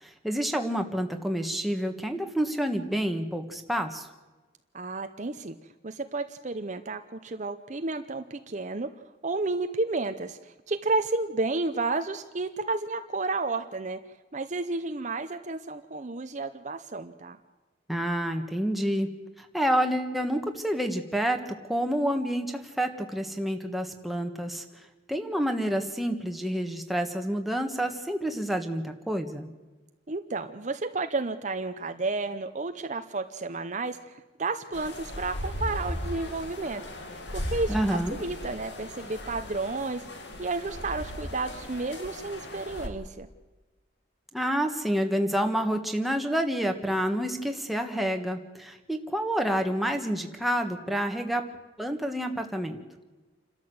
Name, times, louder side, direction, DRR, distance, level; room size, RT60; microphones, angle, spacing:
voice 1, 0.0-4.1 17.9-19.1 19.4-21.4 21.7-24.6 25.1-29.5 37.7-38.2 44.3-51.5 51.8-52.8, equal, ahead, 4 dB, 1.6 m, -28 dB
voice 2, 4.7-5.6 5.8-8.9 9.2-14.0 14.3-17.4 30.1-34.0 34.4-36.8 37.3-40.0 40.4-43.3, right 3 dB, 40° right, 8 dB, 0.8 m, -31 dB
sound 1, 34.7-42.9, left 1 dB, 65° left, 2.5 m, -37 dB
28.5 x 13.0 x 7.9 m, 1.2 s
head